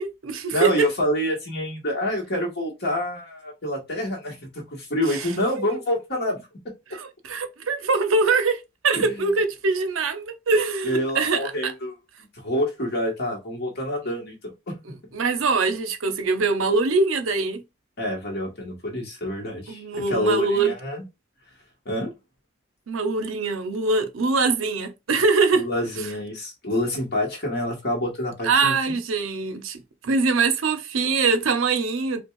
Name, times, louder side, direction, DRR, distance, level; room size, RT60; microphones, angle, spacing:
voice 1, 0.0-0.7 5.1-5.3 5.7-5.8 6.9-11.7 15.1-17.6 19.7-20.7 22.9-25.6 26.0-26.1 28.4-32.2, right 4 dB, 75° right, 0.6 m, -23 dB
voice 2, 0.5-6.5 8.9-9.3 10.8-11.9 12.3-14.7 18.0-21.0 21.8-22.1 25.6-29.0, left 1 dB, 50° left, 1.4 m, -27 dB
5.1 x 2.2 x 2.4 m
head